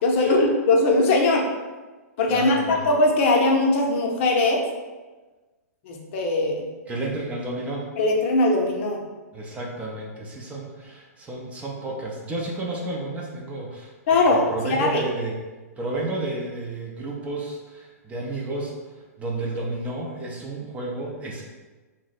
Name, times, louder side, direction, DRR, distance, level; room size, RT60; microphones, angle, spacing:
voice 1, 0.0-1.4 2.2-4.6 5.8-6.7 8.0-9.0 14.1-15.0, left 2 dB, 50° left, 0 dB, 0.6 m, -20 dB
voice 2, 2.3-2.8 6.9-7.9 9.3-15.3 15.8-18.8 19.2-21.4, right 2 dB, 15° right, -2 dB, 0.4 m, -31 dB
2.6 x 2.0 x 3.9 m, 1.2 s
hypercardioid pair, 135°, 9 cm